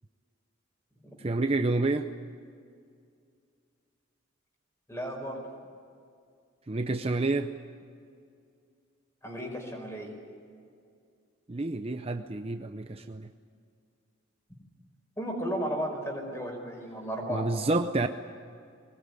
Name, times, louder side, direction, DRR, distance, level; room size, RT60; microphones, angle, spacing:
voice 1, 1.2-2.1 6.7-7.5 11.5-13.3 17.3-18.1, right 2 dB, 30° right, 7 dB, 0.7 m, -28 dB
voice 2, 4.9-5.4 9.2-10.1 15.2-17.5, equal, 15° left, 2 dB, 5.4 m, -34 dB
23.0 x 20.0 x 9.8 m, 2.3 s
head